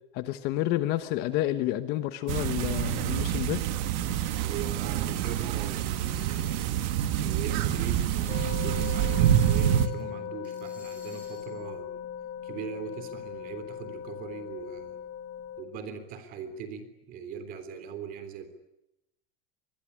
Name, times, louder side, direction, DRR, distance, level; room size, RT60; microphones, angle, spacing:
voice 1, 0.1-3.6, left 14 dB, 35° left, 11 dB, 1.2 m, -29 dB
sound 1, 2.3-9.9, right 11 dB, 50° right, 2.0 m, -27 dB
sound 2, 2.8-10.0 10.4-11.6, equal, 5° right, 5.4 m, -53 dB
voice 2, 4.4-6.9 7.2-11.9 12.4-15.0 15.6-18.5, right 7 dB, 30° right, 11 dB, 3.5 m, -40 dB
sound 3, 8.3-15.6, left 9 dB, 75° left, 3.6 m, -39 dB
25.5 x 22.0 x 9.9 m, 0.88 s
supercardioid pair, 175°, 29 cm